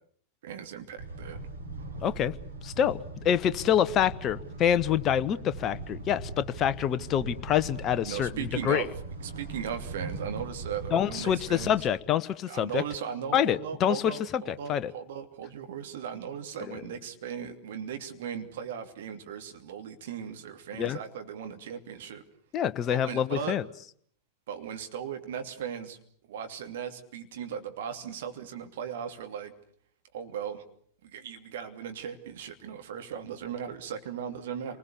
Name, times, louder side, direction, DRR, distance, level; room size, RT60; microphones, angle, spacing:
voice 1, 0.4-1.4 8.0-8.9 9.2-11.8 12.5-22.2 22.9-23.5 24.5-26.0 26.3-29.5 30.1-30.6 31.0-34.8, right 8 dB, 55° right, 6 dB, 2.8 m, -37 dB
sound 1, 1.0-11.9, right 3 dB, 75° right, 5.7 m, -40 dB
voice 2, 2.0-2.3 2.6-8.9 10.9-12.8 13.3-14.9 16.7-16.8 20.7-21.0 22.5-23.6, left 9 dB, 30° left, 14 dB, 1.0 m, -26 dB
28.5 x 20.5 x 8.3 m, 0.62 s
figure-of-eight pair, 90°, 0 cm